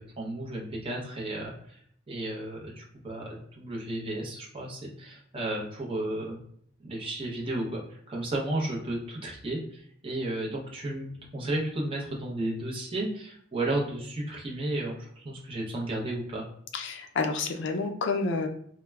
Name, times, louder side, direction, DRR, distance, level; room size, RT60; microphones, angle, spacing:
voice 1, 0.0-1.8 2.1-6.4 6.8-16.4, right 1 dB, 25° right, -3 dB, 0.6 m, -33 dB
voice 2, 16.7-18.5, left 4 dB, 60° left, 6 dB, 0.4 m, -29 dB
3.2 x 2.1 x 2.2 m, 0.64 s
head